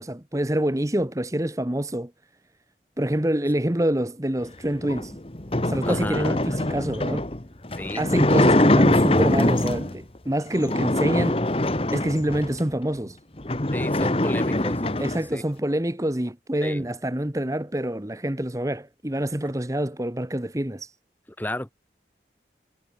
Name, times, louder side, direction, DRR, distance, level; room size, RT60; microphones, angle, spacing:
voice 1, 0.0-2.1 3.0-5.2 5.6-7.2 8.0-11.4 11.9-13.2 15.0-20.9, right 1 dB, 20° right, 1.1 m, -26 dB
sound 1, 4.8-10.0 10.5-12.6 13.1-13.2 13.4-15.2, left 1 dB, 30° left, 1.3 m, -23 dB
voice 2, 5.8-6.3 7.7-8.1 13.7-15.4 16.6-16.9 21.4-21.7, left 1 dB, 10° left, 1.9 m, -33 dB
head